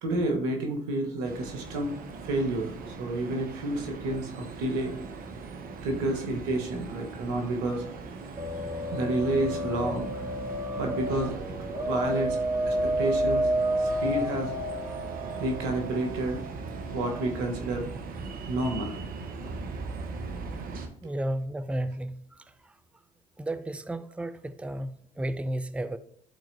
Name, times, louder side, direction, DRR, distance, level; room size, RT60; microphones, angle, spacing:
voice 1, 0.0-1.9 2.2-4.9 5.8-7.9 8.9-10.1 10.8-11.4 11.9-12.4 12.7-13.5 13.8-14.5 15.4-16.4 16.9-17.9 18.5-19.0 19.4-19.5 21.0-21.1, right 2 dB, 85° right, 1.3 m, -30 dB
sound 1, 1.2-20.9, right 4 dB, 60° right, 1.0 m, -40 dB
sound 2, 8.4-17.6, equal, 30° right, 1.4 m, -31 dB
voice 2, 21.0-22.4 23.4-26.0, right 1 dB, 5° right, 0.5 m, -33 dB
11.0 x 4.3 x 2.7 m
hypercardioid pair, 60°, 17 cm